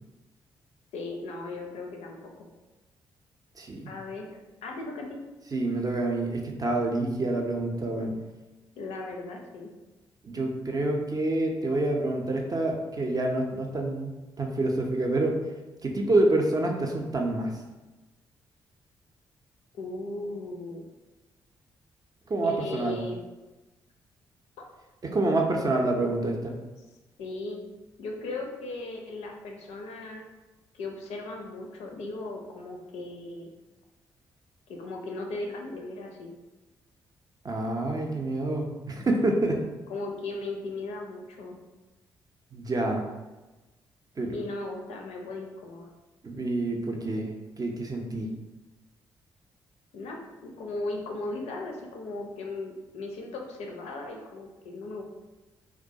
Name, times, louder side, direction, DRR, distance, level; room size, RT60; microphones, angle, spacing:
voice 1, 0.9-2.5 3.9-4.3 4.6-5.2 8.8-9.7 19.7-20.9 22.4-23.2 24.6-24.7 27.2-27.6 28.0-30.2 30.7-33.5 34.7-36.3 39.9-41.6 44.3-45.9 49.9-55.0, left 2 dB, 65° left, 1 dB, 0.4 m, -37 dB
voice 2, 3.6-3.9 5.5-8.1 10.2-15.4 15.8-17.5 22.3-23.0 25.0-26.5 37.4-39.6 42.5-43.0 44.2-44.4 46.2-47.3 47.6-48.3, right 2 dB, 35° right, 1 dB, 0.5 m, -27 dB
2.3 x 2.1 x 2.6 m, 1.1 s
hypercardioid pair, 40°, 11 cm